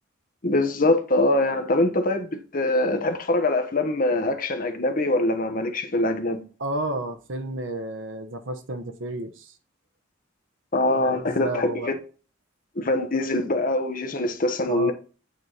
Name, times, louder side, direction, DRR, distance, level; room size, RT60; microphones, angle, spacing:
voice 1, 0.4-6.4 10.7-12.0 12.7-14.9, left 2 dB, 45° left, 1.2 m, -23 dB
voice 2, 6.6-9.5 11.0-11.9 14.7-14.9, right 1 dB, 75° right, 1.0 m, -32 dB
8.6 x 4.7 x 4.0 m
head